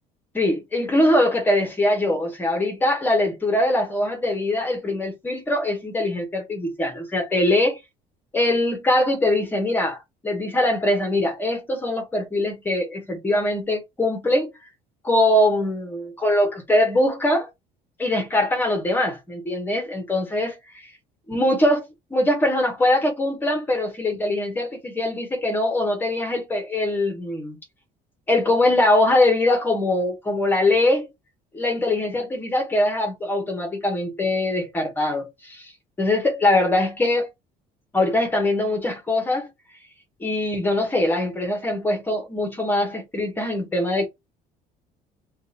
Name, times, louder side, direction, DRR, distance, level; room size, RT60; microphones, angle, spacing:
voice 1, 0.3-7.8 8.3-10.0 10.2-14.5 15.0-17.5 18.0-20.5 21.3-27.6 28.3-31.1 31.5-35.7 36.0-37.3 37.9-39.5 40.2-44.1, left 1 dB, 10° left, 1.1 m, -22 dB
2.8 x 2.4 x 4.1 m
cardioid pair, 165°, 16 cm